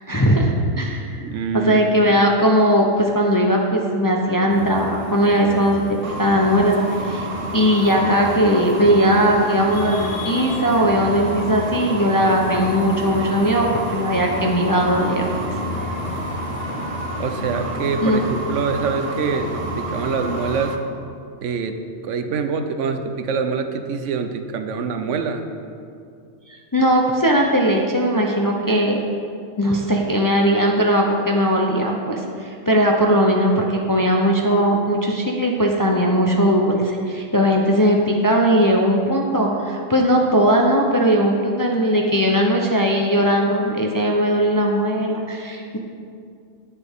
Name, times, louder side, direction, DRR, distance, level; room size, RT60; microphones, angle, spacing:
voice 1, 0.0-1.2 1.5-5.8 6.2-6.8 7.0-7.3 7.5-13.7 13.9-15.2 18.0-18.2 26.5-29.0 29.6-45.8, equal, 25° left, 0 dB, 0.5 m, -18 dB
voice 2, 1.2-2.2 17.1-20.8 21.4-21.8 22.0-25.4, right 5 dB, 75° right, 7 dB, 1.0 m, -25 dB
sound 1, 4.5-20.8, left 2 dB, 60° left, 1.2 m, -32 dB
sound 2, 6.0-20.8, right 3 dB, 40° right, 0.5 m, -31 dB
10.0 x 9.1 x 3.6 m, 2.4 s
omnidirectional pair, 1.3 m